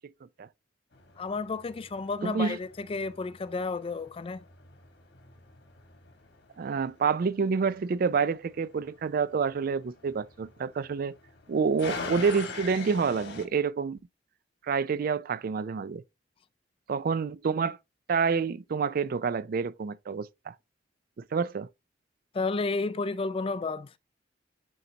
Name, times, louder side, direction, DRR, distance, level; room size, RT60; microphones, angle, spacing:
sound 1, 0.9-13.5, left 4 dB, 70° left, 1.6 m, -45 dB
voice 1, 1.2-4.4 22.3-23.9, left 3 dB, 30° left, 0.4 m, -32 dB
voice 2, 2.2-2.6 6.6-11.1 11.5-14.0 14.7-16.0 16.9-17.8 18.1-20.5 21.3-21.7, right 5 dB, 55° right, 0.4 m, -28 dB
11.0 x 4.0 x 2.8 m
head